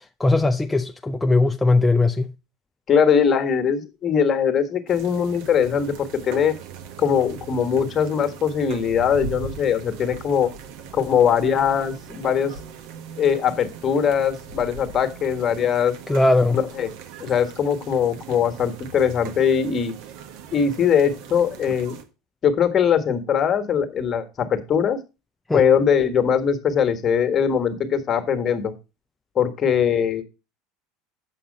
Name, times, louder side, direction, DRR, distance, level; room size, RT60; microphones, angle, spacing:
voice 1, 0.0-2.3 16.1-16.6 25.5-25.6, left 2 dB, 10° left, 0.5 m, -19 dB
voice 2, 2.9-6.5 7.0-10.5 10.9-12.5 13.2-15.9 16.5-16.9 17.2-19.9 20.5-22.0 22.4-25.0 25.5-28.7 29.3-30.2, left 7 dB, 35° left, 1.5 m, -21 dB
sound 1, 4.9-22.0, right 6 dB, 65° right, 1.4 m, -40 dB
7.5 x 5.6 x 5.3 m
hypercardioid pair, 80°, 0 cm